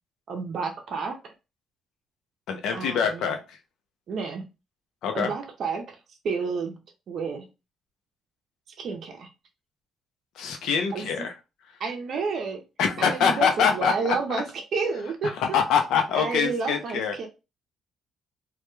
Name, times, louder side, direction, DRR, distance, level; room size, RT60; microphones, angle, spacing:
voice 1, 0.3-1.3 2.7-3.3 4.1-4.4 5.1-6.0 6.2-6.8 7.1-7.5 8.8-9.3 10.9-11.1 11.8-12.6 13.0-14.4 14.7-15.3 16.1-17.3, right 5 dB, 60° right, 4 dB, 0.5 m, -30 dB
voice 2, 2.5-3.6 5.0-5.3 10.4-11.3 12.8-13.9 15.2-17.1, left 7 dB, 80° left, 5 dB, 0.5 m, -24 dB
2.2 x 2.1 x 3.0 m, 0.28 s
cardioid pair, 80°, 0 cm